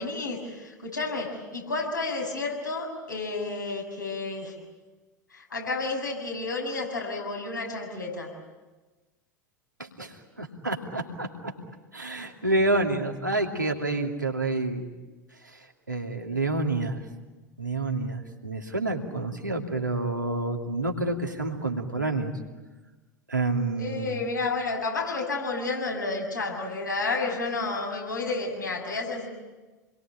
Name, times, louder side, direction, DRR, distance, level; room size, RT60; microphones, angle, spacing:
voice 1, 0.0-4.5 5.3-8.3 23.8-29.3, left 3 dB, 80° left, -1 dB, 7.0 m, -31 dB
voice 2, 9.8-11.3 11.9-14.9 15.5-17.0 17.6-22.3 23.3-24.2, right 2 dB, 90° right, 1 dB, 2.7 m, -28 dB
28.5 x 22.0 x 9.0 m, 1.2 s
figure-of-eight pair, 80°, 10 cm